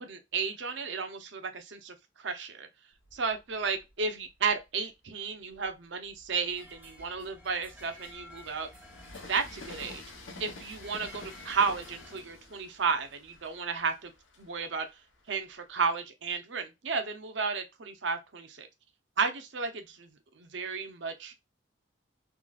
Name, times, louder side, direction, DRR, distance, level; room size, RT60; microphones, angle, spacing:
voice 1, 0.0-2.7 3.1-8.7 9.3-10.0 10.4-14.1 14.4-15.0 15.3-18.7 19.2-21.3, right 5 dB, 70° right, 0.6 m, -33 dB
Train, 3.0-4.7 5.3-15.9, left 3 dB, 85° left, 1.0 m, -50 dB
sound 1, 6.5-12.2, equal, 10° right, 0.7 m, -52 dB
3.7 x 2.4 x 2.3 m
head